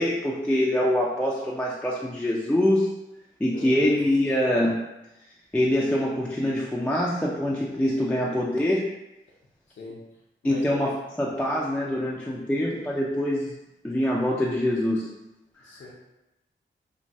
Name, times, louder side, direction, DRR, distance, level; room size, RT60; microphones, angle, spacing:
voice 1, 0.0-2.9 3.4-4.8 5.5-8.8 10.4-10.9 11.2-13.5 13.8-15.1, left 1 dB, 5° left, -4 dB, 0.4 m, -24 dB
voice 2, 3.5-3.9 9.8-10.0 10.4-10.7 15.6-15.9, left 2 dB, 70° left, -5 dB, 0.6 m, -40 dB
3.2 x 2.2 x 2.6 m, 0.93 s
cardioid pair, 65°, 20 cm